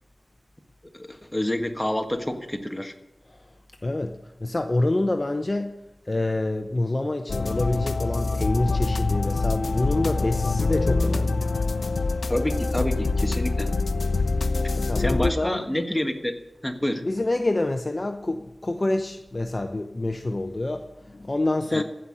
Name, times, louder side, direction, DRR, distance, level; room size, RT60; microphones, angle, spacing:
voice 1, 0.9-2.9 12.3-13.7 15.0-17.0 21.7-21.8, left 1 dB, 15° left, 5 dB, 1.5 m, -28 dB
voice 2, 3.8-5.8 6.1-11.4 14.7-15.6 17.0-21.8, left 2 dB, 40° left, 6 dB, 0.7 m, -27 dB
sound 1, 7.3-15.3, left 3 dB, 90° left, 0.6 m, -25 dB
15.0 x 5.7 x 9.7 m, 0.98 s
wide cardioid pair, 65°, 0 cm